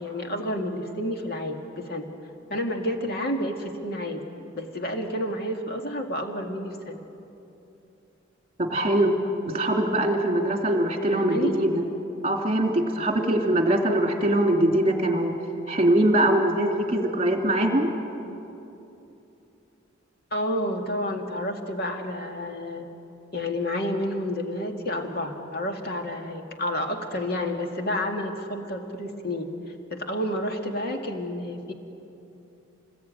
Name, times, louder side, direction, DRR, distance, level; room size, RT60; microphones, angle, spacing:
voice 1, 0.0-2.1 2.5-4.2 4.5-7.0 11.1-11.6 20.3-22.9 23.3-29.5 29.9-31.7, left 1 dB, 50° left, 3 dB, 2.1 m, -30 dB
voice 2, 8.6-9.2 9.4-11.8 12.2-15.3 15.7-17.9, right 1 dB, 30° right, 2 dB, 2.7 m, -22 dB
27.0 x 20.0 x 9.1 m, 2.9 s
head